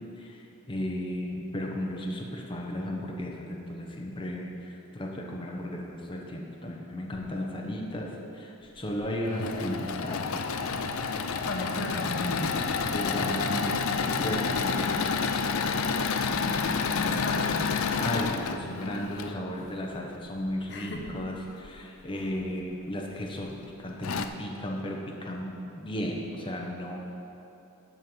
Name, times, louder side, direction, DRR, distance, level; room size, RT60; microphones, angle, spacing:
voice 1, 0.2-10.2 12.9-13.8 14.0-15.2 18.0-27.0, left 1 dB, 25° left, -1 dB, 1.0 m, -35 dB
Engine / Mechanisms, 9.0-19.4 21.0-21.7 22.3-22.4 22.7-22.8 23.6-23.7 24.0-24.3, left 5 dB, 70° left, 0.5 m, -29 dB
voice 2, 11.4-12.6 16.3-17.6 20.7-21.1, left 1 dB, 55° left, 1 dB, 1.0 m, -35 dB
12.0 x 4.5 x 7.9 m, 2.8 s
head